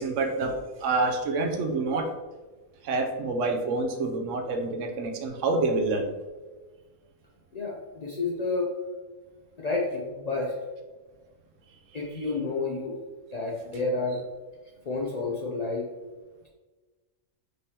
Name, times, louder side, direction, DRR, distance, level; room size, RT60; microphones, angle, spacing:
voice 1, 0.0-2.1 2.8-6.1, right 3 dB, 65° right, 4 dB, 0.9 m, -27 dB
voice 2, 7.5-8.7 9.6-10.5 11.9-13.0 13.3-14.2 14.8-15.9, left 3 dB, 75° left, -3 dB, 0.3 m, -30 dB
5.2 x 3.3 x 2.8 m, 1.3 s
omnidirectional pair, 1.5 m